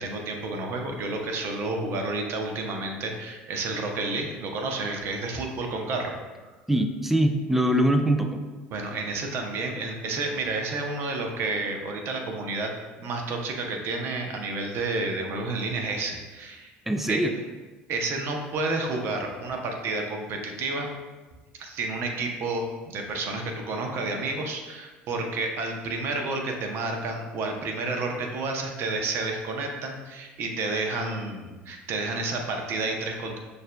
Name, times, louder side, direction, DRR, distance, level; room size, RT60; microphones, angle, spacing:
voice 1, 0.0-6.2 8.7-12.7 13.0-16.7 17.1-17.2 17.9-20.9 21.5-33.4, right 3 dB, 55° right, 3 dB, 0.7 m, -30 dB
voice 2, 6.7-8.4 16.9-17.3, right 1 dB, 5° right, 5 dB, 0.4 m, -23 dB
6.3 x 2.6 x 2.2 m, 1.2 s
hypercardioid pair, 80°, 5 cm